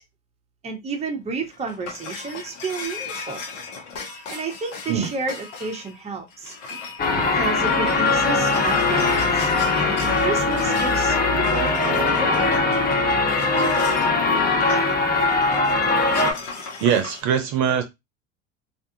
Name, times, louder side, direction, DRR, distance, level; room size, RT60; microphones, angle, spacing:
voice 1, 0.6-3.4 4.3-6.5 7.3-12.6, right 4 dB, 15° right, 0.7 m, -31 dB
sound 1, 1.2-17.2, left 4 dB, 70° left, 1.0 m, -37 dB
sound 2, 7.0-16.3, left 3 dB, 25° left, 0.7 m, -20 dB
voice 2, 16.8-17.8, right 8 dB, 55° right, 0.7 m, -21 dB
2.5 x 2.3 x 2.7 m
hypercardioid pair, 80°, 37 cm